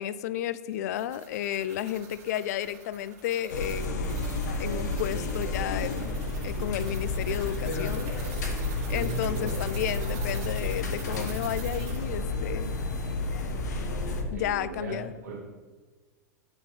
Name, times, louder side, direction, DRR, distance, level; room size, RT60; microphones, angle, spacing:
voice 1, 0.0-4.3 4.6-6.1 6.4-8.1 8.9-12.7 14.3-15.1, left 11 dB, 70° left, 16 dB, 0.4 m, -32 dB
sound 1, 0.7-12.1, right 5 dB, 60° right, 1.9 m, -47 dB
sound 2, 3.5-14.2, left 2 dB, 85° left, 1.1 m, -31 dB
voice 2, 8.9-9.6 14.3-15.6, right 3 dB, 85° right, 0 dB, 1.1 m, -38 dB
6.1 x 4.5 x 6.0 m, 1.4 s
hypercardioid pair, 110°, 9 cm